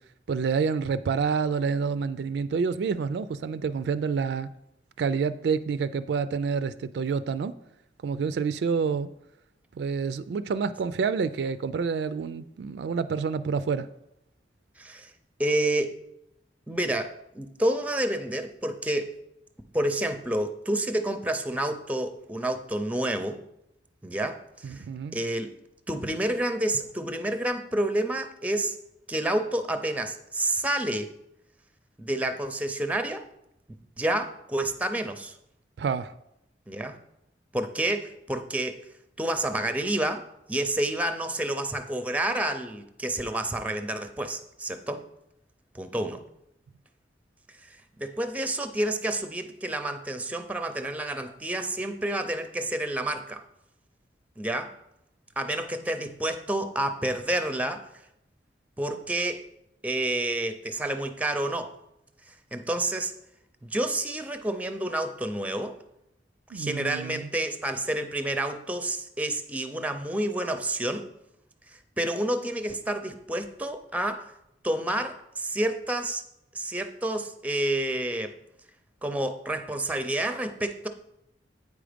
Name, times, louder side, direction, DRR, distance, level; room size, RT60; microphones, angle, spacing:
voice 1, 0.3-4.5 5.0-7.5 8.0-9.1 9.8-13.9 24.6-25.2 35.8-36.1 66.5-67.3, right 5 dB, 70° right, 0.3 m, -28 dB
voice 2, 14.8-15.1 15.4-16.0 16.7-19.1 19.7-23.4 24.0-24.8 25.1-25.5 25.9-28.8 29.1-31.1 32.0-33.2 34.0-35.3 36.7-37.0 37.5-38.9 39.2-40.2 40.5-45.0 45.7-46.2 47.6-53.4 54.4-54.7 55.4-57.8 58.8-59.4 59.8-61.7 62.3-63.1 63.6-65.8 66.5-71.1 71.7-74.3 74.6-76.2 76.5-78.3 79.0-80.9, right 1 dB, 10° right, 0.5 m, -29 dB
8.4 x 5.0 x 5.1 m
head